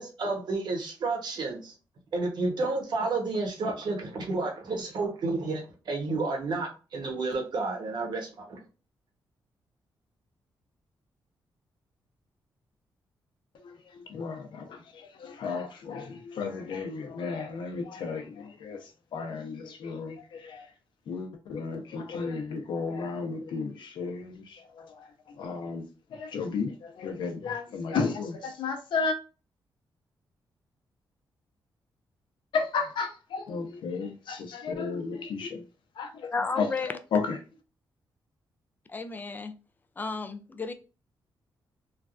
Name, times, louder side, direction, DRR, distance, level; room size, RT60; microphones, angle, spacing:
voice 1, 0.0-1.7 2.1-8.6, right 3 dB, 60° right, 1.0 m, -31 dB
voice 2, 13.5-18.8 19.1-20.7 21.1-25.8 26.1-29.2 32.5-35.6 36.0-36.7 37.1-37.4, left 5 dB, 75° left, 0.7 m, -33 dB
voice 3, 36.3-37.0 38.9-39.5 40.0-40.7, left 4 dB, 20° left, 0.3 m, -32 dB
3.2 x 2.3 x 2.5 m
cardioid pair, 120°, 8 cm